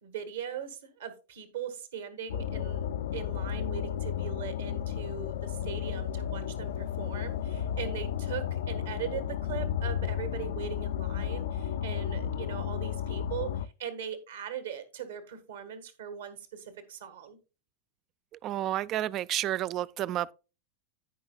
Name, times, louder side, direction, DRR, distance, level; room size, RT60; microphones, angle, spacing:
voice 1, 0.0-17.4, right 8 dB, 60° right, 1.5 m, -40 dB
sound 1, 2.3-13.7, left 9 dB, 60° left, 0.4 m, -33 dB
voice 2, 18.4-20.3, right 13 dB, 35° right, 0.3 m, -30 dB
15.0 x 5.4 x 2.3 m
figure-of-eight pair, 90°, 0 cm